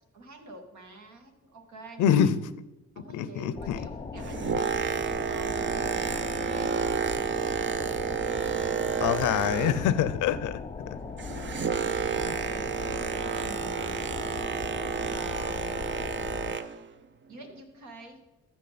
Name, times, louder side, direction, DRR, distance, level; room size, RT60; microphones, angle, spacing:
voice 1, 0.1-2.3 3.0-8.0 11.7-12.7 13.3-14.0 15.1-16.0 17.3-18.2, right 2 dB, 70° right, 2.1 m, -47 dB
voice 2, 2.0-2.4 3.1-3.8 9.0-11.0 12.3-12.4, left 9 dB, 80° left, 0.6 m, -25 dB
sound 1, 3.6-16.6, left 5 dB, 20° left, 0.3 m, -39 dB
Boat Water vehicle, 4.0-10.1 10.4-16.8 17.5-17.6, right 7 dB, 40° right, 0.7 m, -31 dB
15.0 x 6.0 x 4.1 m
cardioid pair, 90°, 30 cm